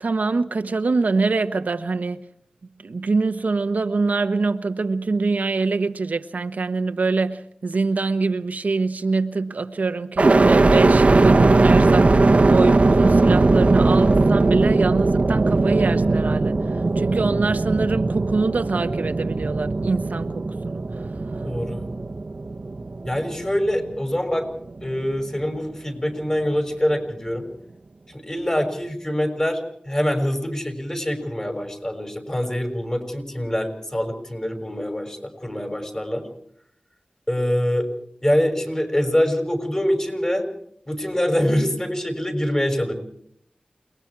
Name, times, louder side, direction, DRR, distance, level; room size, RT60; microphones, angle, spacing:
voice 1, 0.0-2.2 2.8-12.1 12.4-21.1, right 3 dB, 85° right, 1.1 m, -24 dB
sound 1, 10.2-24.2 24.7-25.4, right 3 dB, 55° right, 1.0 m, -19 dB
voice 2, 21.4-21.8 23.0-24.5 24.8-27.5 28.1-36.3 37.3-37.9 38.2-40.5 40.9-42.9, equal, 25° left, 6.2 m, -24 dB
29.0 x 20.5 x 4.8 m
wide cardioid pair, 65°, 3 cm